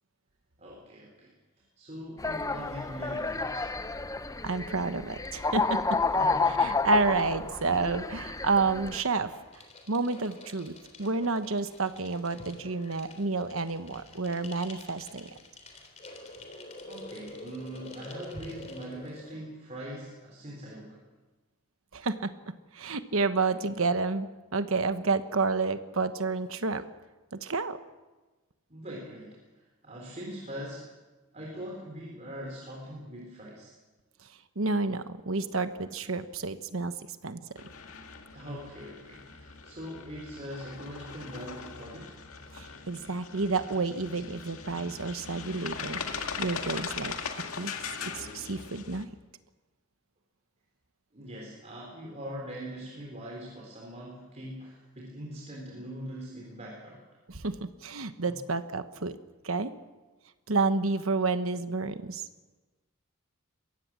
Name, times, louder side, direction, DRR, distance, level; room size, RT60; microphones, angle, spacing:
voice 1, 0.6-3.7 6.1-6.8 7.5-7.7 16.9-21.0 28.7-30.9 31.3-33.7 38.3-42.1 51.1-57.0 58.3-58.4, equal, 30° right, -2 dB, 4.0 m, -42 dB
sound 1, 2.2-9.0, left 3 dB, 15° left, 0.6 m, -30 dB
voice 2, 4.4-5.8 6.6-9.3 9.9-10.7 11.0-15.3 21.9-22.3 22.7-26.8 27.4-27.8 34.6-36.9 37.2-37.4 42.5-47.1 47.6-47.7 48.1-49.1 57.3-59.1 59.4-59.7 60.5-62.2, right 3 dB, 70° right, 10 dB, 1.2 m, -30 dB
sound 2, 9.1-19.4, left 2 dB, 30° left, 3.5 m, -47 dB
sound 3, 37.6-49.0, left 5 dB, 75° left, 1.9 m, -40 dB
22.5 x 17.0 x 7.5 m, 1.2 s
head